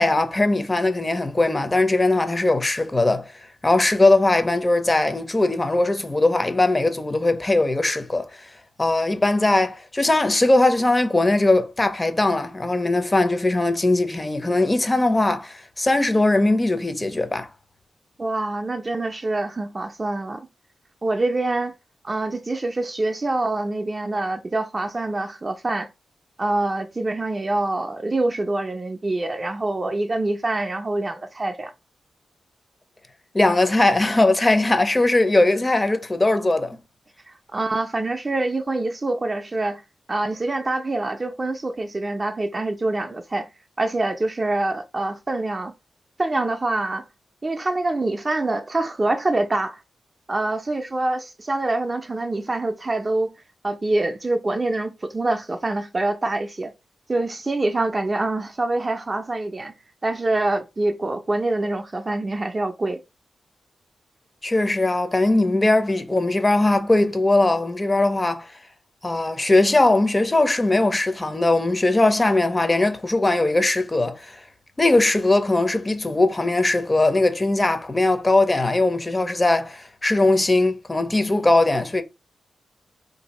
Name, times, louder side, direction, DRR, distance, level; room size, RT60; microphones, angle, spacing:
voice 1, 0.0-3.3 3.6-8.4 8.8-17.5 33.3-36.8 64.4-68.5 69.0-74.4 74.8-82.0, left 2 dB, 20° left, 0.6 m, -20 dB
voice 2, 18.2-20.4 21.0-21.7 22.0-25.9 26.4-31.7 37.5-39.8 40.1-43.5 43.8-45.7 46.2-47.0 47.4-49.8 50.3-53.4 53.6-56.7 57.1-59.7 60.0-63.0, right 2 dB, 30° right, 0.4 m, -25 dB
2.7 x 2.6 x 4.1 m
wide cardioid pair, 100°, 0 cm